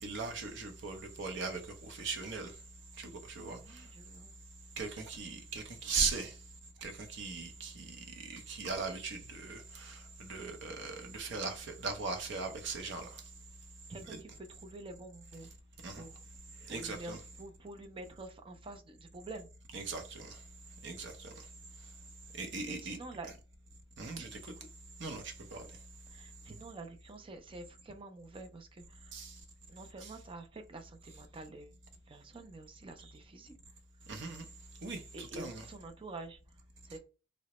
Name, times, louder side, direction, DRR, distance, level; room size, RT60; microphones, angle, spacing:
voice 1, 0.0-2.5 3.0-3.8 4.8-6.3 6.8-7.9 8.2-13.2 14.1-14.2 15.8-16.1 16.7-17.2 19.7-20.4 20.8-21.3 22.4-23.0 24.0-24.4 25.0-25.6 29.1-29.3 30.0-30.1 34.1-34.5 34.8-35.6, right 4 dB, 65° right, 0.6 m, -39 dB
voice 2, 3.5-4.3 13.9-15.5 16.0-16.2 16.7-19.5 22.6-23.3 24.1-24.7 26.1-29.2 29.7-33.5 35.1-36.4 36.8-37.0, right 2 dB, 25° right, 0.4 m, -48 dB
3.8 x 2.1 x 2.9 m
head